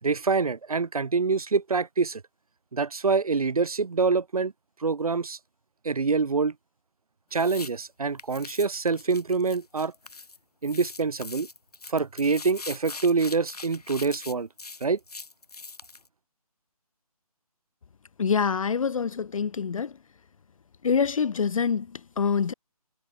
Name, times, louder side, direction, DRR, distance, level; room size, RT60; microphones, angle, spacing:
voice 1, 0.0-2.2 2.7-4.5 4.8-5.4 5.8-6.5 7.3-9.9 10.6-11.5 11.9-14.5 14.8-15.0, right 4 dB, 70° right, 3.8 m, -25 dB
sound 1, 7.3-7.7 8.2-10.4 10.6-16.1, left 4 dB, 80° left, 5.4 m, -42 dB
voice 2, 18.2-19.9 20.8-22.5, left 6 dB, 60° left, 0.6 m, -25 dB
hypercardioid pair, 165°, 20 cm